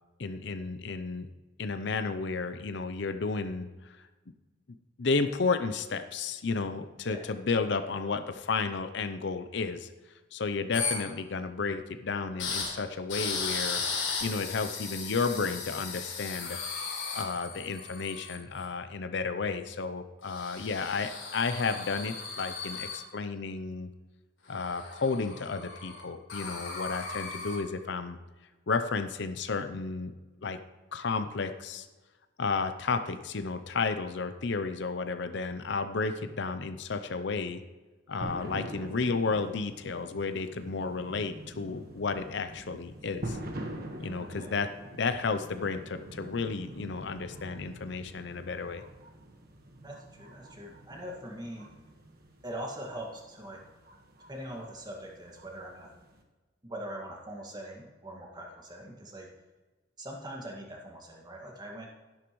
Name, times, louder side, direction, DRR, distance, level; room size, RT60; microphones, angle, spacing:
voice 1, 0.2-1.3 1.6-3.7 5.0-9.9 10.3-13.8 14.2-16.6 17.1-23.9 24.5-28.2 28.7-30.1 30.4-30.6 30.9-31.9 32.4-37.6 38.1-43.4 44.0-44.7 45.0-48.8, left 4 dB, 60° left, 10 dB, 0.6 m, -32 dB
sound 1, 10.7-10.9 12.4-12.7 13.1-18.6 20.3-23.0 24.5-26.0 26.3-27.6, left 5 dB, 85° left, 3.8 m, -36 dB
sound 2, 38.2-56.2, right 1 dB, 50° right, 1.4 m, -45 dB
voice 2, 49.8-51.7 52.4-53.6 54.3-55.9 56.6-59.3 60.0-61.9, right 1 dB, 20° right, 0 dB, 1.9 m, -42 dB
12.0 x 11.0 x 3.1 m, 1.2 s
head